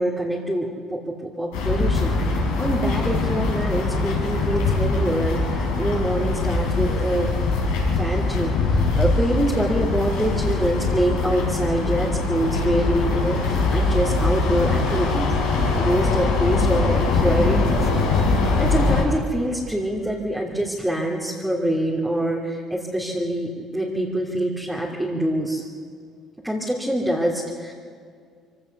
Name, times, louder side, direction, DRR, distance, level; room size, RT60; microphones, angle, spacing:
voice 1, 0.0-7.3 7.9-15.3 15.8-17.9 18.6-25.6 26.4-27.7, right 1 dB, 5° right, -4 dB, 3.2 m, -25 dB
sound 1, 1.5-19.0, left 3 dB, 85° left, 6.3 m, -22 dB
23.5 x 16.5 x 6.8 m, 2.1 s
supercardioid pair, 75°, 0 cm